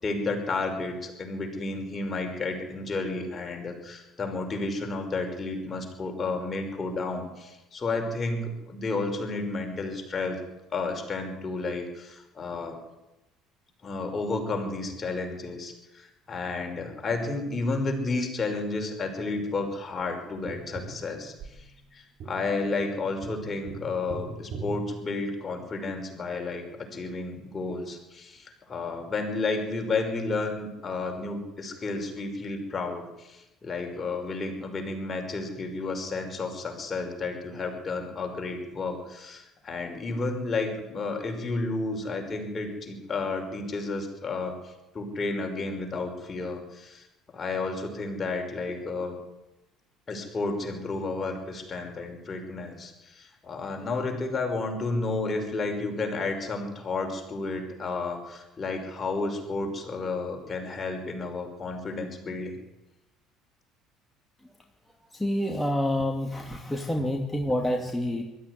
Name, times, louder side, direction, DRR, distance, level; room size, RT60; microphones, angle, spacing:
voice 1, 0.0-10.4 10.7-12.8 13.8-21.6 21.9-47.1 47.3-49.2 50.1-62.6, left 3 dB, 30° left, 3 dB, 5.5 m, -32 dB
Tap, 20.5-25.8 28.4-28.5, right 3 dB, 55° right, 4.3 m, -42 dB
voice 2, 65.1-68.2, left 1 dB, 10° left, 1 dB, 2.6 m, -28 dB
21.5 x 13.0 x 9.8 m, 0.98 s
hypercardioid pair, 60°, 0 cm